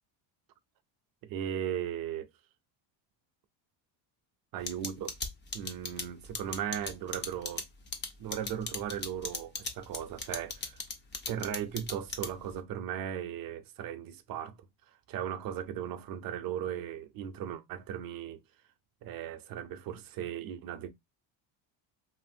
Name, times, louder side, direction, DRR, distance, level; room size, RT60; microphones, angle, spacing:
voice 1, 1.2-2.3 4.5-5.1 5.5-7.6 8.2-10.8 11.3-14.7 15.1-18.4 19.0-20.9, right 9 dB, 50° right, 0.5 m, -37 dB
sound 1, 4.7-12.6, left 4 dB, 25° left, 0.4 m, -36 dB
2.9 x 2.5 x 2.6 m
cardioid pair, 125°, 48 cm